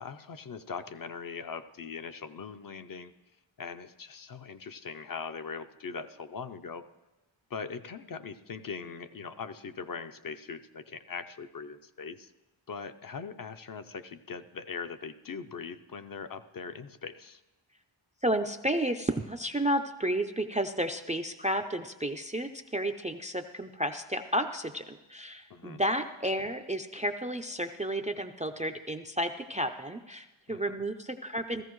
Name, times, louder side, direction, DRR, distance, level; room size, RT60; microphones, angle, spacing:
voice 1, 0.0-3.1 3.6-6.8 7.5-12.3 12.7-17.4 25.5-25.8 30.5-30.7, left 5 dB, 45° left, 9 dB, 0.5 m, -41 dB
voice 2, 18.2-31.6, right 1 dB, 15° right, 7 dB, 0.4 m, -32 dB
16.0 x 14.5 x 3.1 m, 1.0 s
wide cardioid pair, 145°, 48 cm